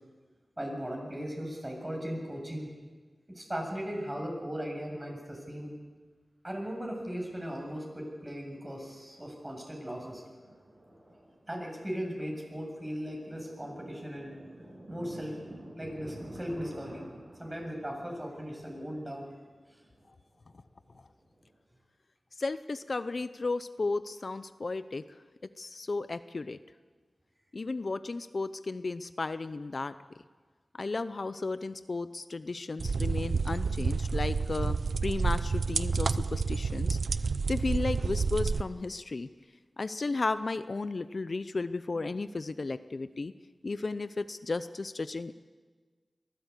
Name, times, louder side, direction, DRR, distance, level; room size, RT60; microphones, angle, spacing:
voice 1, 0.6-2.7 3.3-5.7 6.4-10.2 11.5-14.4 14.9-15.4 15.8-17.1 17.4-19.3, equal, 20° right, 0 dB, 7.1 m, -37 dB
Thunder, 6.9-7.7 8.0-8.1 8.5-8.8 9.1-21.5, right 1 dB, 50° right, 7.8 m, -50 dB
voice 2, 22.4-25.0 25.6-26.6 27.5-29.9 30.8-37.0 37.5-39.3 39.8-43.3 43.6-45.3, left 3 dB, 60° left, 13 dB, 0.6 m, -34 dB
sound 1, 32.8-38.6, right 4 dB, 80° right, 0.6 m, -29 dB
22.5 x 15.0 x 8.3 m, 1.4 s
cardioid pair, 50°, 0 cm